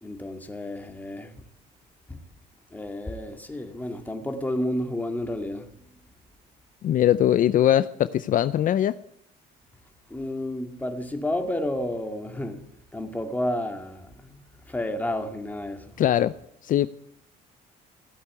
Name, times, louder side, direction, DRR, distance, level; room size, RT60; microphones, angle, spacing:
voice 1, 0.0-1.4 2.1-2.2 2.7-5.7 10.1-12.7 12.9-16.0, left 1 dB, 10° left, 2.1 m, -31 dB
voice 2, 6.8-9.0 16.0-16.3 16.6-16.9, left 11 dB, 50° left, 0.5 m, -21 dB
16.0 x 8.2 x 9.6 m
cardioid pair, 110°, 17 cm